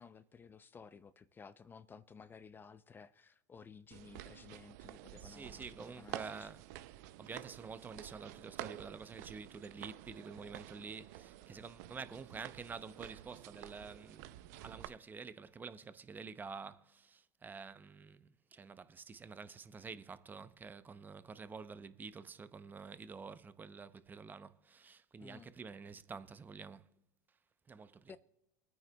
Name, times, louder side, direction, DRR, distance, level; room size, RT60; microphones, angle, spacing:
voice 1, 0.0-6.5 25.2-25.5 28.1-28.2, left 5 dB, 20° left, 0.5 m, -55 dB
sound 1, 3.9-14.9, right 15 dB, 70° right, 0.5 m, -50 dB
voice 2, 5.2-6.6 7.2-26.9 27.7-28.1, right 5 dB, 20° right, 0.7 m, -49 dB
24.5 x 9.2 x 2.3 m
hypercardioid pair, 100°, 9 cm